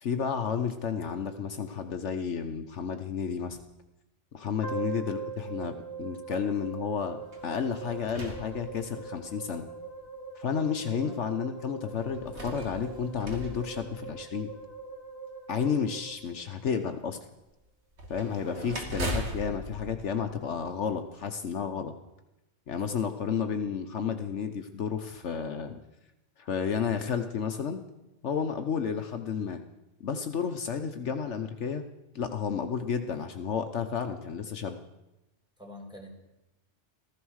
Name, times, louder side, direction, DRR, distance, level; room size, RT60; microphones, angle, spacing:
voice 1, 0.0-3.6 4.3-9.7 10.4-14.5 15.5-17.2 18.1-21.9 22.7-25.8 26.4-27.8 28.2-29.6 30.0-31.8 32.1-34.8, left 7 dB, 70° left, 7 dB, 1.2 m, -31 dB
sound 1, 4.6-16.9, right 5 dB, 50° left, 1.8 m, -42 dB
sound 2, 7.3-9.3 10.0-10.1 12.0-14.6 17.9-21.0, equal, 65° right, 2.5 m, -39 dB
voice 2, 35.6-36.2, left 1 dB, 5° right, 0 dB, 4.1 m, -45 dB
15.0 x 14.5 x 6.4 m, 0.95 s
omnidirectional pair, 1.3 m